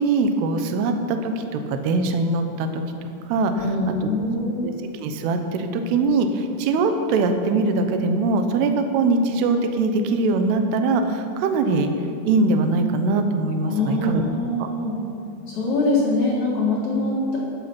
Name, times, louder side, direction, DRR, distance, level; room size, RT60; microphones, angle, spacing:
voice 1, 0.0-2.8 3.3-3.5 4.6-11.9 12.2-14.2, right 3 dB, 75° right, 6 dB, 2.7 m, -22 dB
voice 2, 3.5-4.7 13.7-15.0 15.5-17.4, left 2 dB, 55° left, -5 dB, 2.2 m, -23 dB
13.5 x 6.8 x 6.0 m, 2.8 s
omnidirectional pair, 5.1 m